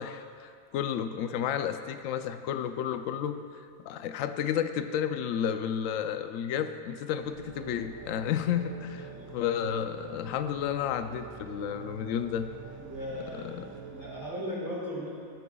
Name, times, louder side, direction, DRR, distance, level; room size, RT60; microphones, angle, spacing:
voice 1, 0.0-3.4 3.9-12.5 13.4-13.7, left 9 dB, 70° left, 9 dB, 0.9 m, -32 dB
sound 1, 7.2-14.2, right 6 dB, 80° right, 1.4 m, -46 dB
voice 2, 12.8-13.6 13.9-15.1, equal, 10° right, -9 dB, 1.9 m, -37 dB
15.0 x 12.0 x 2.3 m, 2.2 s
omnidirectional pair, 1.5 m